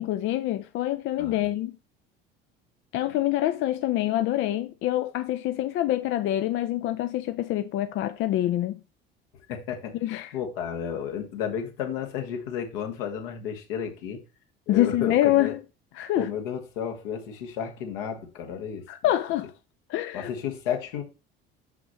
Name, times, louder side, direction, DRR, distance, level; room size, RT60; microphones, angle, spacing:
voice 1, 0.0-1.7 2.9-8.8 10.0-10.3 14.7-15.6 16.0-16.3 18.9-19.5 19.9-20.3, left 14 dB, 40° left, 0.5 m, -26 dB
voice 2, 9.5-10.0 10.3-14.2 14.7-15.5 16.1-18.8 20.1-21.0, left 8 dB, 65° left, 1.3 m, -32 dB
6.1 x 5.8 x 3.1 m
figure-of-eight pair, 60°, 30 cm